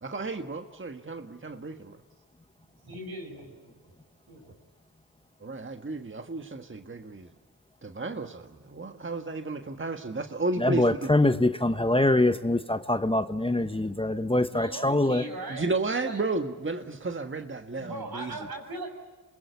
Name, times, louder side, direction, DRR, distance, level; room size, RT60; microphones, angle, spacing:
voice 1, 0.0-2.0 5.4-7.3 7.8-11.1 15.5-18.4, right 3 dB, 35° right, 1.6 m, -33 dB
voice 2, 2.8-3.6 4.3-4.5 14.5-15.7 16.0-16.2 17.8-18.9, right 2 dB, 80° right, 7.1 m, -39 dB
voice 3, 10.6-15.2, left 2 dB, 15° left, 1.1 m, -24 dB
26.5 x 21.5 x 9.5 m
cardioid pair, 45°, 36 cm